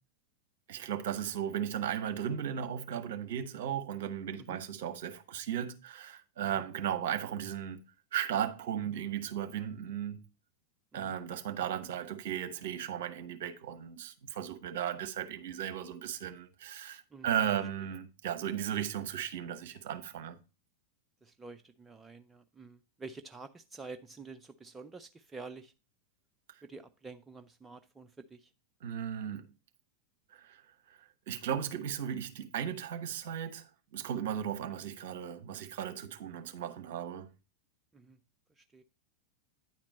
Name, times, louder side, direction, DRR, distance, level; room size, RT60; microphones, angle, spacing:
voice 1, 0.7-7.8 8.1-10.2 10.9-20.4 28.8-29.5 30.3-30.6 30.9-31.0 31.3-37.3, right 9 dB, 55° right, 1.0 m, -36 dB
voice 2, 21.2-25.7 26.6-28.5 37.9-38.2 38.6-38.8, right 4 dB, 15° right, 0.5 m, -49 dB
9.5 x 4.4 x 4.3 m
figure-of-eight pair, 90°, 0 cm